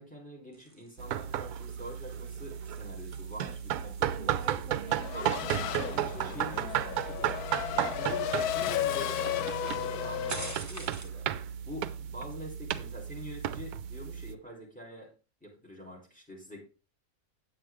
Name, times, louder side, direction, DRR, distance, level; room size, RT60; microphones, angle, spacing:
voice 1, 0.0-4.7 5.1-7.4 7.7-15.1 15.4-16.6, equal, 5° left, -1 dB, 3.4 m, -45 dB
sound 1, 0.5-11.2, right 2 dB, 15° right, 0.6 m, -50 dB
sound 2, 1.0-14.3, right 11 dB, 75° right, 1.1 m, -34 dB
voice 2, 4.1-6.0, right 4 dB, 60° right, 6 dB, 1.3 m, -44 dB
Race car auto racing / Accelerating revving vroom, 4.9-10.6, left 11 dB, 75° left, 1.1 m, -34 dB
9.0 x 7.8 x 3.5 m, 0.33 s
omnidirectional pair, 1.7 m